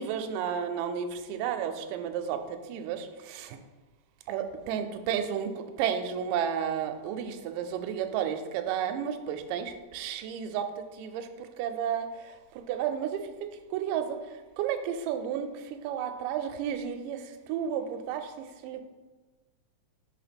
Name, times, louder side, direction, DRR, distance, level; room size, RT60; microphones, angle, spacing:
voice 1, 0.0-3.6 4.3-18.8, right 8 dB, 85° right, 7 dB, 2.2 m, -32 dB
5.6 x 4.3 x 5.1 m, 1.3 s
omnidirectional pair, 3.8 m